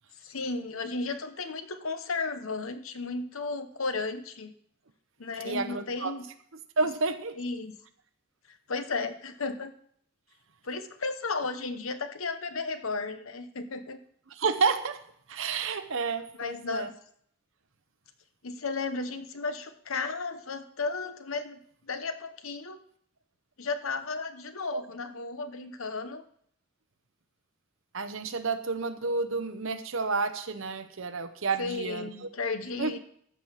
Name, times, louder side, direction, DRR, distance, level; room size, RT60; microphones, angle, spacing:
voice 1, 0.2-4.5 5.2-6.2 7.4-7.8 8.7-9.7 10.6-14.0 16.4-16.9 18.4-21.6 21.9-22.8 23.6-26.2 31.6-33.0, left 3 dB, 75° left, 9 dB, 1.0 m, -34 dB
voice 2, 5.4-6.1 6.8-7.3 14.3-15.0 15.3-16.9 24.7-24.8 27.9-32.3 32.8-33.0, right 4 dB, 70° right, 8 dB, 1.0 m, -30 dB
14.0 x 6.4 x 5.7 m, 0.63 s
head